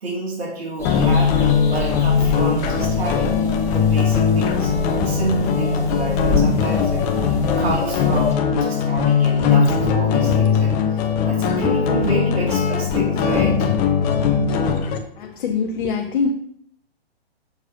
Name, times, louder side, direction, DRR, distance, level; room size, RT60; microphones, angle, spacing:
voice 1, 0.0-4.7 5.0-7.1 7.6-13.7, right 2 dB, 75° right, -3 dB, 2.8 m, -28 dB
sound 1, 0.8-15.0, left 6 dB, 25° left, 0.9 m, -20 dB
sound 2, 0.8-8.3, left 2 dB, 10° left, 2.0 m, -27 dB
voice 2, 15.2-16.3, left 5 dB, 55° left, 4 dB, 0.9 m, -23 dB
6.6 x 4.7 x 5.7 m, 0.65 s
hypercardioid pair, 125°, 31 cm